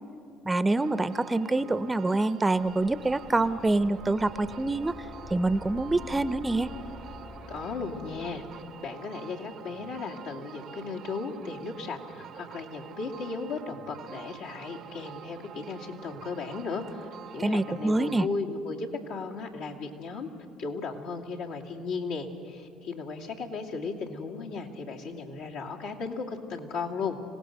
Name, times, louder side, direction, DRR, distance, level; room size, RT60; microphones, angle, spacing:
voice 1, 0.5-5.0 5.3-6.7 17.4-18.3, right 2 dB, 15° right, 15 dB, 0.6 m, -26 dB
sound 1, 0.8-18.3, right 9 dB, 60° right, 0.6 m, -46 dB
sound 2, 2.5-8.9, left 3 dB, 55° left, 1.5 m, -46 dB
voice 2, 7.5-20.3 20.6-27.2, left 4 dB, 80° left, -2 dB, 2.4 m, -36 dB
25.5 x 17.5 x 6.5 m, 2.5 s
supercardioid pair, 75°, 0 cm